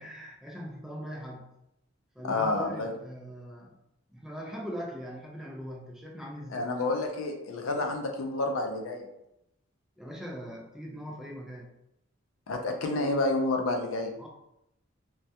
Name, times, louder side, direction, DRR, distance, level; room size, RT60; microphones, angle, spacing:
voice 1, 0.0-1.5 2.1-3.8 4.1-6.7 10.0-11.7 14.2-14.3, equal, ahead, -2 dB, 0.3 m, -41 dB
voice 2, 2.2-2.9 6.5-9.1 12.5-14.1, left 2 dB, 90° left, 4 dB, 0.4 m, -29 dB
2.2 x 2.1 x 2.7 m, 0.84 s
head